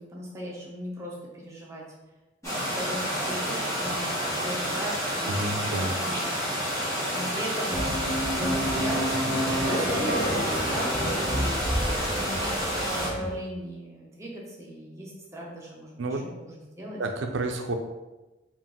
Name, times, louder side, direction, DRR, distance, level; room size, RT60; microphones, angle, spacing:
voice 1, 0.0-1.8 2.4-8.0 8.3-17.0, equal, 15° right, -4 dB, 0.8 m, -38 dB
sound 1, 2.4-13.1, equal, 15° left, 1.3 m, -29 dB
voice 2, 5.3-5.9 16.0-16.2 17.0-17.7, right 2 dB, 80° right, 5 dB, 0.5 m, -29 dB
sound 2, 7.7-13.4, equal, 55° left, 0.9 m, -29 dB
3.8 x 2.5 x 3.6 m, 1.1 s
head